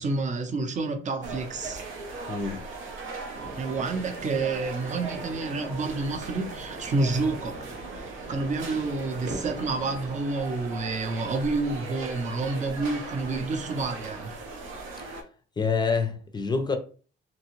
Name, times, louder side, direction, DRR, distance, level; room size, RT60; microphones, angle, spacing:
voice 1, 0.0-1.8 3.5-7.6 8.0-14.4, right 3 dB, 40° right, 0.6 m, -29 dB
sound 1, 1.2-15.2, right 3 dB, 85° right, 0.7 m, -39 dB
voice 2, 2.3-2.6 15.6-16.8, left 5 dB, 20° left, 0.5 m, -26 dB
sound 2, 3.3-10.1, right 2 dB, 65° right, 1.0 m, -42 dB
2.8 x 2.2 x 2.9 m
cardioid pair, 90°, 20 cm